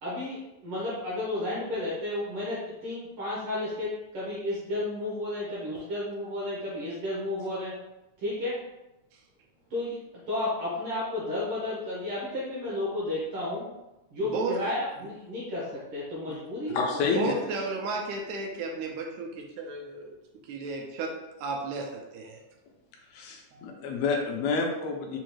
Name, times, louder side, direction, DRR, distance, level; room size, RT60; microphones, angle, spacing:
voice 1, 0.0-7.7 8.2-8.6 9.7-10.0 10.3-13.7 14.1-16.9, left 1 dB, 65° right, -7 dB, 1.4 m, -32 dB
voice 2, 14.2-14.6 17.2-20.1 20.5-22.4 23.5-23.7, right 3 dB, 85° right, 1 dB, 2.0 m, -33 dB
voice 3, 16.7-17.3 23.1-25.2, left 4 dB, 75° left, 1 dB, 1.7 m, -28 dB
5.1 x 2.4 x 3.0 m, 0.97 s
omnidirectional pair, 3.5 m